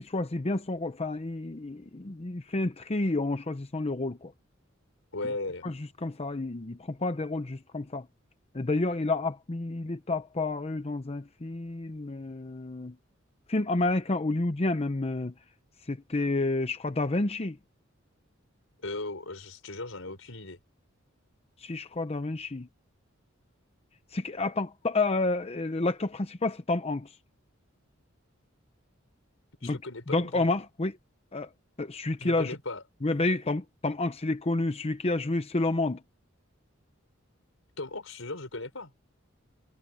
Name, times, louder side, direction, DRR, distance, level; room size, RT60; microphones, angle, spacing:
voice 1, 0.0-4.3 5.6-8.1 8.5-13.0 13.5-15.3 15.9-17.6 21.6-22.7 24.1-27.1 29.6-29.8 30.1-30.9 31.3-31.5 31.8-32.5 33.0-36.0, left 2 dB, 30° left, 0.8 m, -30 dB
voice 2, 5.1-5.7 18.8-20.6 29.6-30.5 32.2-32.8 37.8-38.9, left 2 dB, 80° left, 5.2 m, -37 dB
head